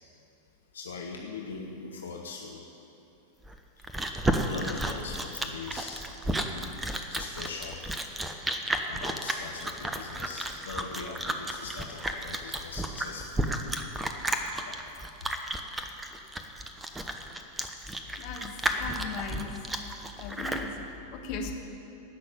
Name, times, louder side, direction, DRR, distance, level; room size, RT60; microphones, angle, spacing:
voice 1, 0.7-2.6 3.8-3.9 4.4-6.0 6.5-6.7 7.1-7.9 8.2-8.3 8.8-13.5 14.6-14.8 15.2-15.3, left 4 dB, 70° left, 1 dB, 1.1 m, -41 dB
Chewing mastication, 3.4-20.7, right 1 dB, 10° right, 1.0 m, -32 dB
voice 2, 18.2-19.6 20.2-20.7 21.1-21.5, left 5 dB, 45° left, 2 dB, 1.7 m, -37 dB
16.5 x 6.2 x 9.9 m, 2.8 s
figure-of-eight pair, 90°, 0 cm